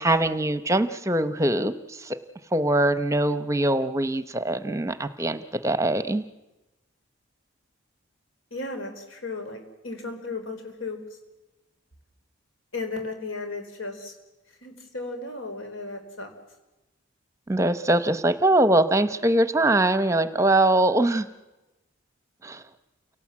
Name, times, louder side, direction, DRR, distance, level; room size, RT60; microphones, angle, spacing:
voice 1, 0.0-2.2 2.5-6.2 17.5-21.3 22.4-22.6, right 1 dB, 15° right, 11 dB, 0.7 m, -22 dB
voice 2, 8.5-11.0 12.7-14.1 14.6-16.3, left 3 dB, 90° left, 5 dB, 4.4 m, -35 dB
29.0 x 18.0 x 7.4 m, 1.0 s
head